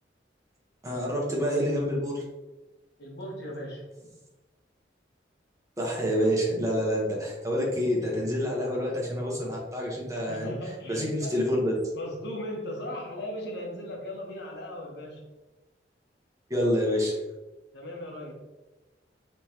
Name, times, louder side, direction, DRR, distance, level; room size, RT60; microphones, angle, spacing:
voice 1, 0.8-2.2 5.8-10.5 10.9-11.7 16.5-17.2, equal, 20° right, -3 dB, 1.1 m, -27 dB
voice 2, 3.0-3.9 10.3-11.3 11.9-15.2 17.7-18.3, left 1 dB, 65° left, -1 dB, 1.2 m, -37 dB
5.4 x 3.2 x 2.9 m, 1.1 s
head